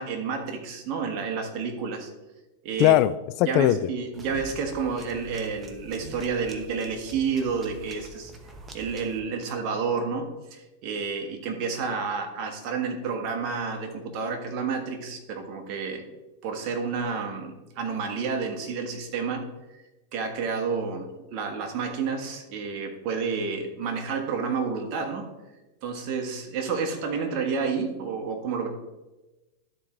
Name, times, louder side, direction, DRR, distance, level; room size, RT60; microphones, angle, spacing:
voice 1, 0.0-2.1 2.6-2.9 3.4-8.3 8.7-16.1 16.4-19.5 20.1-25.3 25.8-28.7, right 5 dB, 45° right, 4 dB, 1.5 m, -30 dB
voice 2, 2.8-3.9, left 14 dB, 50° left, 16 dB, 0.3 m, -20 dB
sound 1, 4.1-9.2, right 2 dB, 20° right, 1.0 m, -45 dB
12.0 x 4.4 x 3.8 m, 1.1 s
hypercardioid pair, 120°, 0 cm